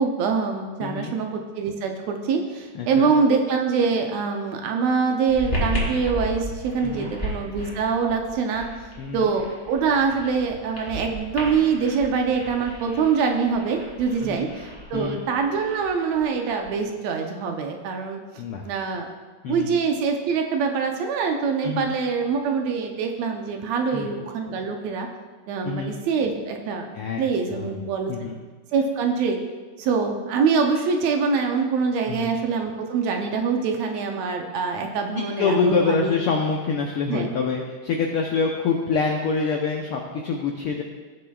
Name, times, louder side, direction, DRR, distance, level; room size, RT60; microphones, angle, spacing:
voice 1, 0.0-19.1 19.5-25.1 25.5-26.9 27.2-28.3 28.7-29.4 29.8-36.1 37.1-37.3, right 5 dB, 75° right, 3 dB, 1.8 m, -24 dB
voice 2, 0.8-1.2 2.7-3.1 6.8-7.1 9.0-9.3 14.2-14.5 14.9-15.2 18.4-18.6 19.4-19.7 21.6-21.9 23.9-24.2 25.6-25.9 26.9-27.2 27.5-27.8 28.1-28.4 32.0-32.4 35.2-40.8, left 4 dB, 90° left, 1 dB, 1.2 m, -26 dB
sound 1, 5.3-16.8, equal, 10° left, 2.8 m, -34 dB
16.5 x 6.9 x 2.3 m, 1.4 s
omnidirectional pair, 3.4 m